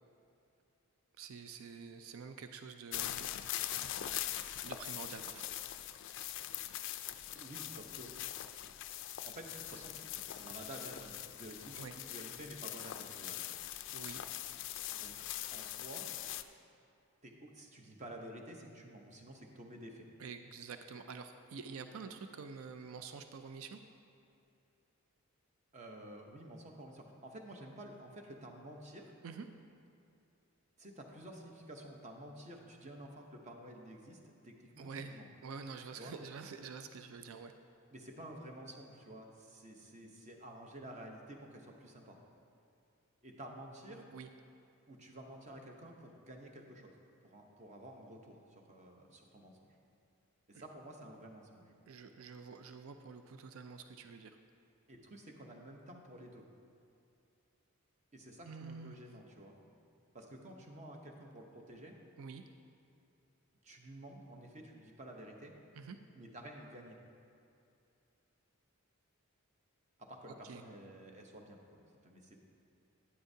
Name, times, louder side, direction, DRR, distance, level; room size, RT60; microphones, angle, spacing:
voice 1, 1.2-3.3 4.6-5.5 11.7-11.9 13.9-14.2 20.2-23.8 29.2-29.5 34.8-37.5 43.9-44.3 50.5-50.6 51.9-54.4 58.4-59.0 62.2-62.4 65.8-66.0 70.4-70.6, right 5 dB, 70° right, 8 dB, 0.4 m, -47 dB
sound 1, 2.9-16.4, left 12 dB, 55° left, 0.3 m, -42 dB
voice 2, 7.3-8.1 9.2-13.5 14.9-15.2 15.5-16.1 17.2-20.1 25.7-29.1 30.8-35.3 36.0-36.1 37.9-42.2 43.2-44.1 44.9-46.9 47.2-49.7 50.5-51.7 54.9-56.4 58.1-59.6 60.1-62.0 63.6-65.5 66.1-67.0 70.0-72.4, right 1 dB, 30° right, 1 dB, 0.8 m, -51 dB
11.5 x 9.8 x 2.7 m, 2.6 s
head